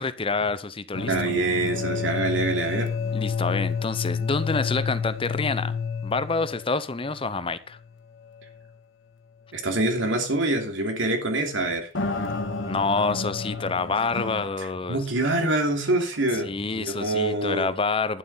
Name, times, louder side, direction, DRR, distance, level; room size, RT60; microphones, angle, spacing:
voice 1, 0.0-1.1 3.1-5.8 6.0-7.8 12.6-15.0 16.4-18.2, left 4 dB, 30° left, 14 dB, 0.7 m, -27 dB
sound 1, 0.9-7.5 7.8-7.9 8.5-8.6 11.9-14.5, left 5 dB, 75° left, 1.8 m, -30 dB
voice 2, 1.1-2.9 9.5-11.9 14.6-17.7, right 2 dB, 80° right, 4 dB, 3.0 m, -25 dB
11.0 x 7.6 x 5.6 m, 0.37 s
head